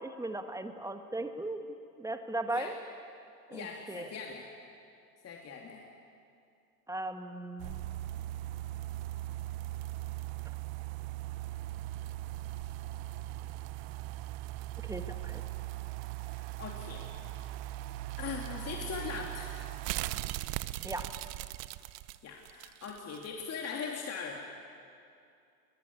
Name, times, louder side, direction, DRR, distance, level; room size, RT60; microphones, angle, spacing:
voice 1, 0.0-1.6 2.0-2.7 3.5-4.1 6.9-7.8 14.8-15.4 20.8-21.1, right 2 dB, 5° right, 7 dB, 1.6 m, -37 dB
voice 2, 3.5-4.5 5.2-5.9 16.2-17.5 18.2-19.7 22.2-24.4, left 5 dB, 30° left, 0 dB, 2.7 m, -41 dB
sound 1, 7.6-23.3 23.6-23.7, right 16 dB, 50° right, 0.9 m, -39 dB
21.0 x 21.0 x 9.7 m, 2.5 s
hypercardioid pair, 95°, 49 cm